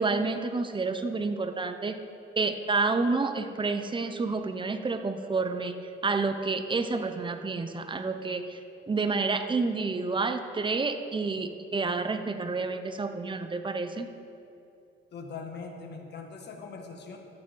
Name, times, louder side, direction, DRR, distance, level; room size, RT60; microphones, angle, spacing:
voice 1, 0.0-2.0 2.4-8.6 8.9-14.1, right 3 dB, 25° right, 7 dB, 0.8 m, -29 dB
voice 2, 15.1-17.2, left 4 dB, 60° left, 4 dB, 1.6 m, -41 dB
13.5 x 8.4 x 4.7 m, 2.7 s
cardioid pair, 90°, 20 cm